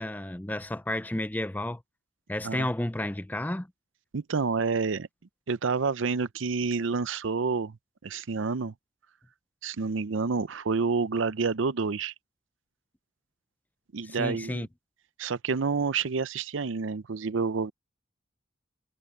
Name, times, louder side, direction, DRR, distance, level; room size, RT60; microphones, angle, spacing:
voice 1, 0.0-1.8 2.3-3.7 14.0-14.7, left 1 dB, 10° left, 0.4 m, -32 dB
voice 2, 4.1-5.1 5.5-7.8 8.0-8.7 9.6-12.1 13.9-14.7 15.2-17.7, right 4 dB, 90° right, 0.6 m, -28 dB
head